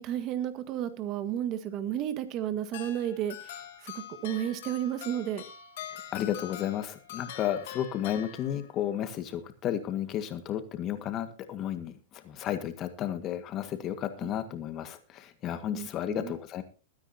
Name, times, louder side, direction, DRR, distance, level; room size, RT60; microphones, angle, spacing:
voice 1, 0.0-5.4 14.2-14.3 15.7-16.3, right 10 dB, 35° right, 11 dB, 1.7 m, -33 dB
sound 1, 2.7-8.9, left 10 dB, 65° left, 3.3 m, -44 dB
voice 2, 6.1-16.6, left 10 dB, 30° left, 9 dB, 1.8 m, -33 dB
22.5 x 9.8 x 2.9 m, 0.34 s
hypercardioid pair, 140°, 0 cm